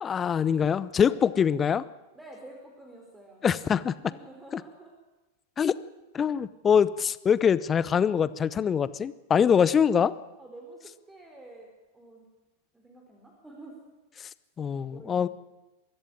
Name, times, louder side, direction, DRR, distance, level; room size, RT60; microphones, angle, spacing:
voice 1, 0.0-1.8 3.4-3.9 5.6-5.7 6.1-10.1 14.6-15.3, left 7 dB, 20° left, 18 dB, 0.8 m, -24 dB
voice 2, 2.1-3.4 4.0-4.9 9.4-9.8 10.4-12.3 12.7-13.8 14.9-15.3, right 2 dB, 5° right, 0 dB, 4.0 m, -49 dB
23.5 x 14.0 x 9.0 m, 1.1 s
figure-of-eight pair, 90°, 0 cm